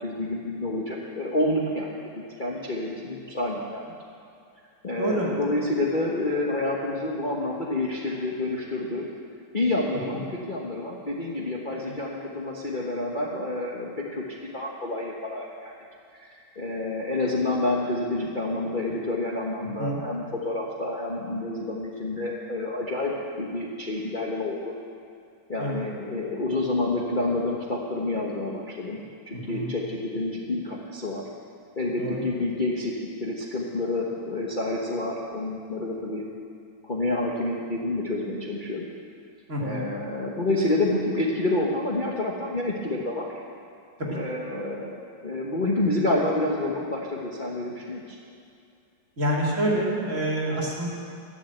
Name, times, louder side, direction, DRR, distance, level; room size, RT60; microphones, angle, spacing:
voice 1, 0.0-1.9 2.2-3.8 4.8-9.1 9.5-14.2 14.5-15.7 16.1-24.7 25.5-31.3 31.8-36.2 36.8-38.8 39.6-43.3 44.0-45.0 45.2-48.2, left 2 dB, 30° left, -3 dB, 1.1 m, -28 dB
voice 2, 5.0-5.3 10.1-10.2 19.8-20.0 25.6-25.8 29.3-29.7 32.0-32.2 39.5-39.9 49.2-50.9, right 1 dB, 35° right, -5 dB, 3.1 m, -27 dB
12.5 x 11.0 x 7.9 m, 2.5 s
omnidirectional pair, 2.2 m